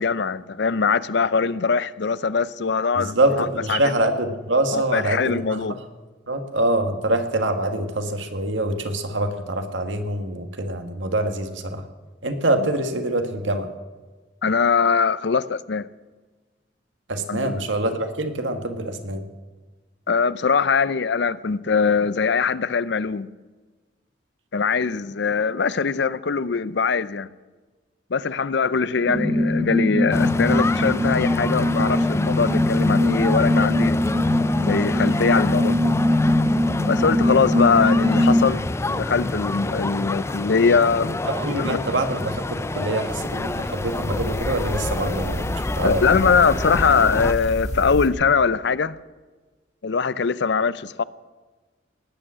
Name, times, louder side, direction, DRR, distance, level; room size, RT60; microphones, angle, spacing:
voice 1, 0.0-3.8 4.7-5.8 12.6-12.7 14.4-15.9 17.3-17.6 20.1-23.3 24.5-27.3 28.1-34.0 34.6-35.9 36.9-41.2 41.5-41.8 45.8-49.0 49.8-51.0, left 5 dB, 65° left, 0.5 m, -22 dB
voice 2, 2.9-5.7 6.3-11.8 12.2-13.7 17.1-19.2 41.2-46.2, right 1 dB, 90° right, 1.7 m, -25 dB
sound 1, 29.1-38.4, left 1 dB, 30° right, 1.6 m, -21 dB
sound 2, 30.1-47.3, left 2 dB, 15° left, 0.4 m, -29 dB
sound 3, 43.1-48.1, equal, 40° left, 1.8 m, -31 dB
19.0 x 8.8 x 7.6 m
head